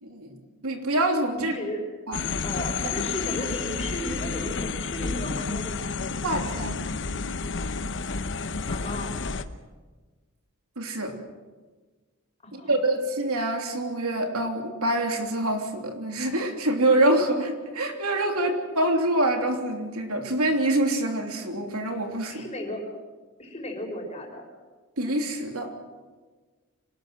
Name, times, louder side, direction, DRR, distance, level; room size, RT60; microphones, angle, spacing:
voice 1, 0.0-1.5 2.1-2.2 2.8-2.9 6.2-6.8 10.8-11.1 12.5-22.4 25.0-25.7, right 1 dB, 70° right, 4 dB, 3.2 m, -26 dB
voice 2, 1.4-1.8 2.4-5.9 8.7-9.1 12.4-12.8 22.3-22.8 23.4-24.4, left 1 dB, 30° left, 2 dB, 5.4 m, -35 dB
sound 1, 2.1-9.4, left 4 dB, 55° left, 1.1 m, -30 dB
26.0 x 19.5 x 7.6 m, 1.4 s
head